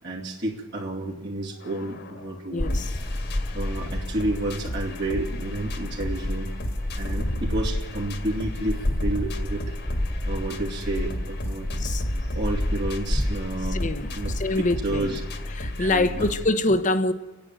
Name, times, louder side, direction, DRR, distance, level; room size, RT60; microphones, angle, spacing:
voice 1, 0.0-2.8 3.5-6.5 6.9-9.8 10.2-11.7 12.2-13.8 14.1-14.3 14.8-15.2 15.8-16.3, right 2 dB, 55° right, 2.6 m, -31 dB
sound 1, 1.6-16.5, left 1 dB, 55° left, 1.9 m, -34 dB
voice 2, 2.5-2.9 11.8-12.1 13.7-15.2 15.6-17.1, left 2 dB, 40° left, 0.9 m, -25 dB
sound 2, 2.6-15.5, left 1 dB, 15° left, 0.6 m, -31 dB
30.0 x 10.5 x 9.2 m
head